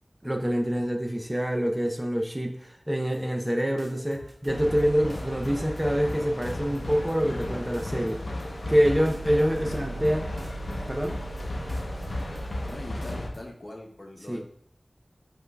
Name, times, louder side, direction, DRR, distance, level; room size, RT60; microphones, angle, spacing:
voice 1, 0.2-8.2 8.7-10.3 10.9-11.2 14.3-14.4, equal, 15° right, 3 dB, 0.5 m, -26 dB
sound 1, 3.1-3.5 3.8-4.8 5.1-5.5 5.8-6.1 6.4-7.5 7.7-8.1 8.4-8.8 9.1-10.1 10.4-10.8 11.0-11.4 11.7-12.7 13.0-13.4, right 1 dB, 55° right, 0.9 m, -50 dB
sound 2, 4.5-13.3, left 1 dB, 85° left, 0.6 m, -34 dB
voice 2, 9.6-10.2 12.7-14.4, left 1 dB, 55° left, 1 dB, 0.8 m, -43 dB
5.2 x 3.9 x 2.2 m, 0.66 s
wide cardioid pair, 55°, 0 cm